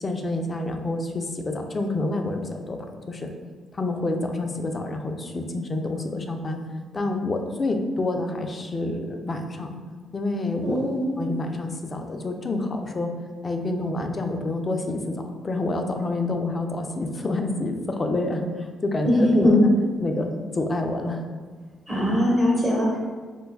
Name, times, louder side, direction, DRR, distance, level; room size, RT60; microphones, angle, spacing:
voice 1, 0.0-3.3 3.7-6.6 6.9-9.7 10.1-10.8 11.2-13.1 13.4-19.5 20.0-21.2, left 2 dB, 30° left, 4 dB, 0.4 m, -28 dB
voice 2, 10.6-11.1 19.0-19.1 19.4-19.6 21.9-23.0, left 1 dB, 5° right, -5 dB, 1.2 m, -21 dB
4.4 x 2.2 x 2.3 m, 1.5 s
cardioid pair, 90°, 0 cm